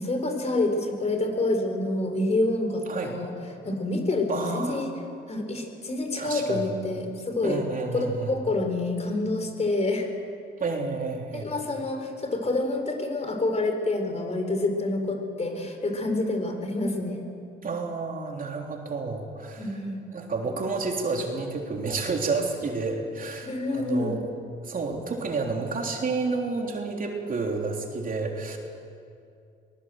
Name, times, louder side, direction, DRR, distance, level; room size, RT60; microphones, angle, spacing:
voice 1, 0.0-3.3 3.6-5.0 5.3-7.6 7.9-10.1 11.3-17.2 19.6-20.0 23.4-24.2, left 2 dB, 35° left, 4 dB, 4.2 m, -27 dB
voice 2, 4.3-4.8 6.2-6.7 7.4-8.4 10.6-11.5 17.6-19.8 20.1-24.3 24.6-28.6, right 4 dB, 45° right, 1 dB, 3.5 m, -30 dB
23.5 x 20.0 x 7.9 m, 2.4 s
cardioid pair, 90°, 20 cm